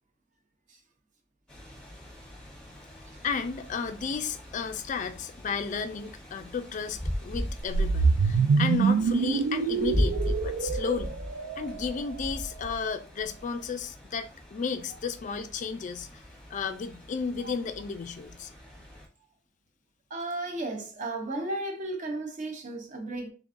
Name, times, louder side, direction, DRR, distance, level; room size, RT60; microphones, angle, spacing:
sound 1, 1.5-19.1, left 1 dB, 5° left, 0.9 m, -38 dB
voice 1, 3.2-11.2 11.6-16.1 16.5-18.5, left 5 dB, 40° left, 0.3 m, -33 dB
sound 2, 7.7-11.9, right 5 dB, 75° right, 0.3 m, -25 dB
voice 2, 20.1-23.3, right 2 dB, 40° right, 0.7 m, -34 dB
3.7 x 3.5 x 2.5 m
head